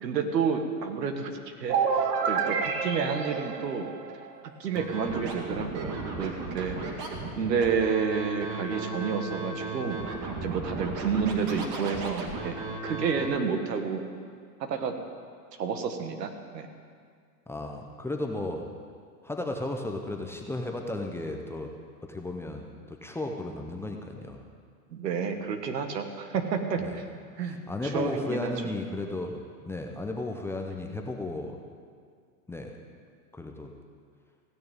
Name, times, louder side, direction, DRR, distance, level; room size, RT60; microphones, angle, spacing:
voice 1, 0.0-3.9 4.6-6.8 7.3-10.0 10.4-12.6 12.8-14.0 14.6-15.0 15.6-16.7 24.9-27.1 27.4-27.6 27.9-28.5, right 6 dB, 90° right, 7 dB, 1.7 m, -30 dB
sound 1, 1.7-4.5, right 6 dB, 70° right, 1.4 m, -28 dB
Scratching (performance technique), 4.7-13.2, right 3 dB, 35° right, 2.0 m, -35 dB
voice 2, 17.5-18.7 19.2-21.7 22.0-24.4 26.8-26.9 27.7-31.6 32.5-32.8 33.3-33.7, left 2 dB, 5° left, 2 dB, 0.6 m, -34 dB
16.0 x 6.6 x 8.7 m, 2.1 s
hypercardioid pair, 135°, 48 cm